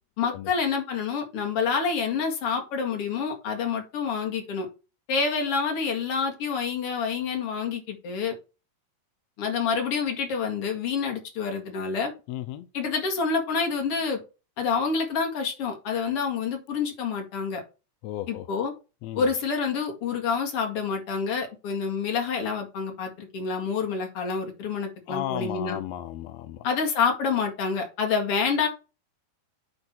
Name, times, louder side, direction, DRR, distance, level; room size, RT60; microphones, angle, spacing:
voice 1, 0.2-4.7 5.1-8.3 9.4-12.1 12.7-14.2 14.6-17.6 18.3-18.7 19.1-25.8 26.6-28.7, left 5 dB, 50° left, 2.5 m, -27 dB
voice 2, 12.3-12.7 18.0-18.5 19.0-19.3 25.1-26.7, left 13 dB, 85° left, 1.5 m, -34 dB
9.7 x 3.8 x 4.4 m
omnidirectional pair, 3.8 m